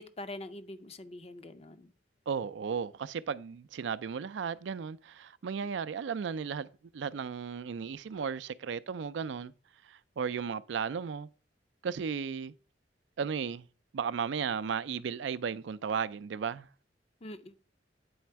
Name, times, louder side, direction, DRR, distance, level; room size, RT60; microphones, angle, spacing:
voice 1, 0.0-1.9 17.2-17.6, left 1 dB, 35° left, 0.5 m, -44 dB
voice 2, 2.3-6.7 6.9-9.5 9.9-11.3 11.8-12.5 13.2-13.6 13.9-16.7, right 6 dB, 80° right, 0.4 m, -35 dB
8.6 x 4.1 x 4.5 m
head